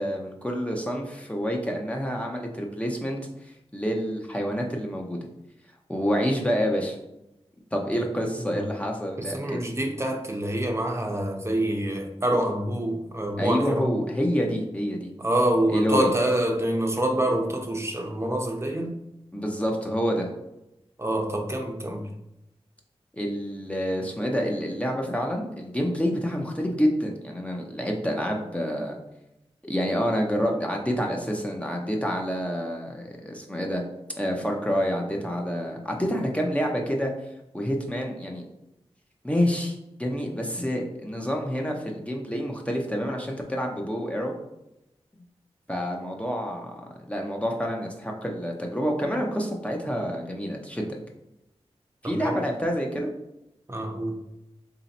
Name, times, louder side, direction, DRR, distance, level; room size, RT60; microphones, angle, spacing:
voice 1, 0.0-3.2 3.7-5.2 5.9-7.0 7.7-9.4 13.4-15.1 15.7-16.1 19.3-20.3 23.1-29.0 29.6-33.8 34.2-37.1 37.5-38.4 39.2-44.3 45.7-50.9 52.0-53.1, equal, 10° left, 0 dB, 0.7 m, -28 dB
voice 2, 9.2-13.9 15.2-19.0 21.0-22.1 52.0-52.4 53.7-54.2, right 1 dB, 25° right, 2 dB, 0.8 m, -26 dB
3.0 x 2.8 x 4.1 m, 0.89 s
cardioid pair, 50°, 11 cm